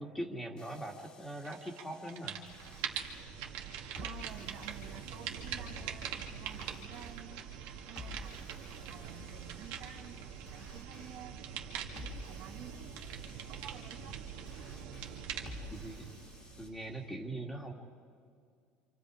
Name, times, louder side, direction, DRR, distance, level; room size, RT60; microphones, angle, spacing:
voice 1, 0.0-2.4 15.7-16.1 16.6-17.7, right 1 dB, 5° left, 1 dB, 2.0 m, -41 dB
sound 1, 0.6-16.7, left 3 dB, 25° left, 2.0 m, -54 dB
sound 2, 1.4-1.8 2.1-17.1, right 8 dB, 90° right, 2.4 m, -43 dB
voice 2, 4.0-7.4 7.9-11.4 11.7-13.1 13.5-14.2, right 9 dB, 50° right, 3 dB, 1.7 m, -52 dB
28.5 x 27.5 x 5.0 m, 2.3 s
cardioid pair, 175°, 4 cm